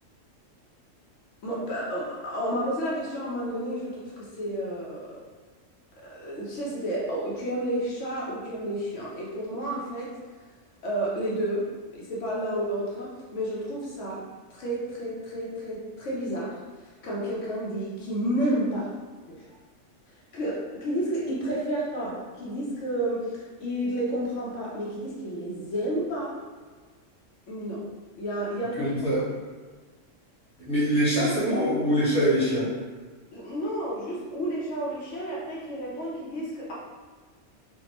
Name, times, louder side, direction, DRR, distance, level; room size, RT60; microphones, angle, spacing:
voice 1, 1.4-5.2 6.0-10.2 10.8-16.6 17.0-18.9 19.3-19.4 20.3-26.4 27.5-27.8 28.2-29.0 33.3-36.7, right 1 dB, 70° left, -5 dB, 1.0 m, -31 dB
voice 2, 28.8-29.2 30.6-32.7, equal, 5° left, -9 dB, 1.0 m, -24 dB
3.4 x 2.2 x 2.9 m, 1.4 s
omnidirectional pair, 1.3 m